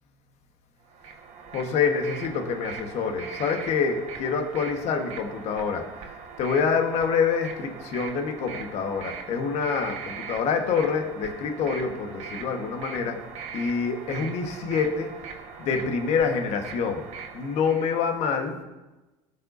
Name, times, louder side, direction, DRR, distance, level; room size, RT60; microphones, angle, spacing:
sound 1, 0.9-18.0, right 6 dB, 60° right, 1.4 m, -41 dB
voice 1, 1.5-5.8 6.4-13.2 13.5-15.1 15.6-17.0 17.3-18.6, left 5 dB, 60° left, 4 dB, 1.4 m, -26 dB
14.5 x 5.5 x 2.7 m, 1.1 s
supercardioid pair, 95°, 13 cm